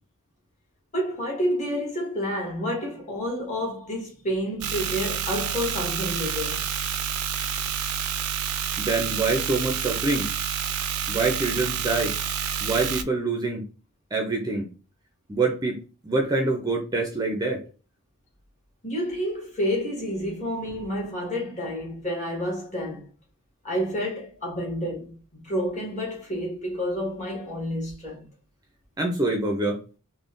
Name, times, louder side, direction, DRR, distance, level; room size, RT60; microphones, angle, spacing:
voice 1, 0.9-6.6 18.8-23.1 23.6-28.3, equal, 35° left, 1.4 m, -29 dB
sound 1, 4.6-13.0, right 7 dB, 75° right, 0.4 m, -29 dB
voice 2, 8.8-10.3 11.1-12.1 12.6-13.6 14.1-14.6 15.3-17.6 29.0-29.8, right 3 dB, 15° right, 0.5 m, -25 dB
3.6 x 2.2 x 2.5 m
head